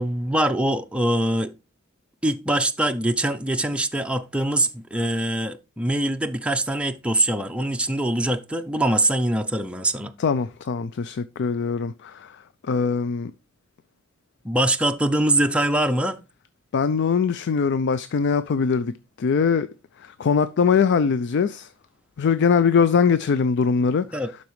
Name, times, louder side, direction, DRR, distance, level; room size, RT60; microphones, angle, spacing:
voice 1, 0.0-1.5 2.2-10.1 14.4-16.2 24.1-24.3, right 1 dB, 5° right, 0.5 m, -23 dB
voice 2, 10.2-13.3 16.7-19.7 20.0-21.7 22.2-24.2, left 6 dB, 60° left, 0.4 m, -22 dB
12.0 x 4.1 x 3.1 m
head